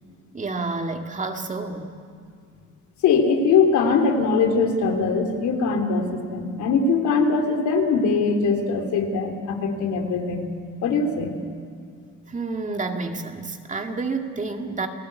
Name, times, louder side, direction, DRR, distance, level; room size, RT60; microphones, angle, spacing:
voice 1, 0.3-1.9 12.3-14.9, right 3 dB, 25° right, 4 dB, 2.0 m, -29 dB
voice 2, 3.0-10.5 10.8-11.4, left 4 dB, 75° left, 4 dB, 3.2 m, -21 dB
29.5 x 17.5 x 8.2 m, 2.2 s
cardioid pair, 125°, 29 cm